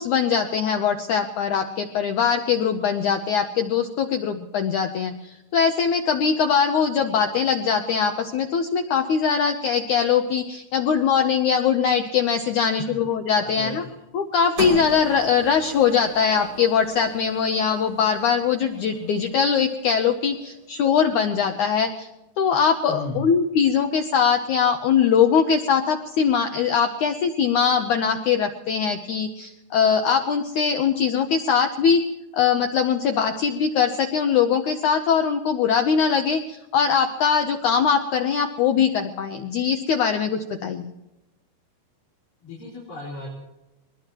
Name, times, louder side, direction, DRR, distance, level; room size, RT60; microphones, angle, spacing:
voice 1, 0.0-13.8 14.1-22.1 22.4-32.0 32.3-40.9, left 7 dB, 80° left, 5 dB, 1.8 m, -21 dB
voice 2, 13.4-13.9 22.9-23.2 42.4-43.3, left 3 dB, 55° left, -6 dB, 5.2 m, -35 dB
sound 1, 14.6-20.9, right 1 dB, 60° right, 8.0 m, -38 dB
23.0 x 20.5 x 3.0 m, 0.95 s
omnidirectional pair, 4.7 m